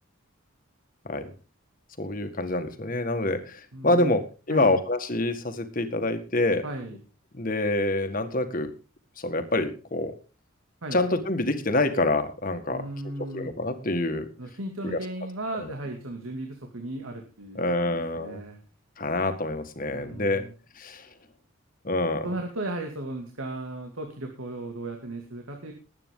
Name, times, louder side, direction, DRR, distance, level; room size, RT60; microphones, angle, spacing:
voice 1, 2.0-6.6 7.3-8.7 9.2-10.1 10.9-12.8 13.2-14.3 14.8-15.0 17.6-18.4 19.0-20.4 20.8-21.1 21.8-22.3, left 2 dB, 40° left, 8 dB, 1.7 m, -26 dB
voice 2, 3.7-4.2 4.5-4.7 6.6-7.0 10.8-11.0 12.7-13.5 14.4-18.6 19.9-20.5 22.2-25.7, right 2 dB, 90° right, 3 dB, 2.5 m, -36 dB
20.0 x 9.0 x 3.8 m, 0.33 s
head